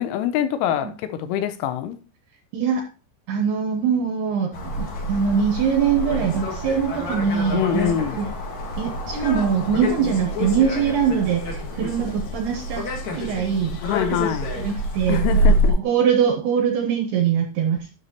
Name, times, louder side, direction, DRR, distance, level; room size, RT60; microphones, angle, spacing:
voice 1, 0.0-2.0 7.5-8.2 13.8-14.5 15.1-15.8, left 10 dB, 80° left, 3.0 m, -24 dB
voice 2, 3.3-8.3 8.8-13.8 14.2-14.3 14.5-17.8, right 7 dB, 80° right, 2.4 m, -23 dB
sound 1, 4.5-15.7, equal, 65° left, 1.9 m, -26 dB
10.0 x 6.8 x 2.9 m
omnidirectional pair, 5.8 m